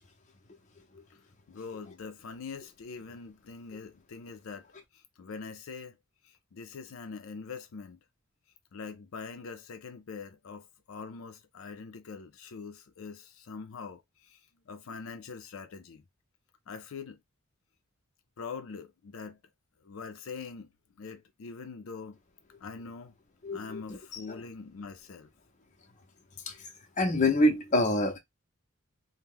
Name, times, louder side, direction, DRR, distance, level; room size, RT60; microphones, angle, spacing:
voice 1, 1.5-4.7 4.9-6.0 6.2-8.0 8.7-14.4 14.7-16.0 16.7-17.2 18.4-19.4 19.8-20.7 21.0-22.2 22.6-23.1 23.5-25.3, left 5 dB, 80° left, 0.5 m, -43 dB
voice 2, 23.4-24.0 24.3-24.4 26.5-26.6 27.0-28.2, left 1 dB, 35° left, 0.6 m, -26 dB
2.9 x 2.1 x 3.5 m
head